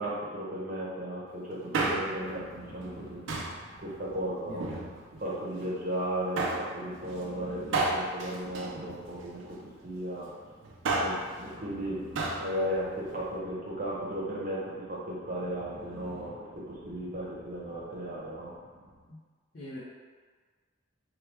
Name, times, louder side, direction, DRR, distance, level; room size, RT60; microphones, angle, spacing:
voice 1, 0.0-3.2 3.8-4.7 5.2-9.6 9.8-10.3 11.0-12.0 12.4-18.5, right 1 dB, 40° right, -6 dB, 0.7 m, -35 dB
Male speech man speaking, 1.5-2.3 3.3-3.7 4.5-5.3 6.4-6.7 7.7-9.4 10.6-11.3 12.2-12.5 12.8-12.9, right 2 dB, 70° right, 0.4 m, -31 dB
sound 1, 1.9-19.1, equal, ahead, 1.2 m, -52 dB
voice 2, 4.5-4.9 16.9-17.2 19.1-19.2 19.5-19.8, left 1 dB, 50° left, -9 dB, 0.5 m, -44 dB
3.0 x 2.2 x 3.3 m, 1.5 s
head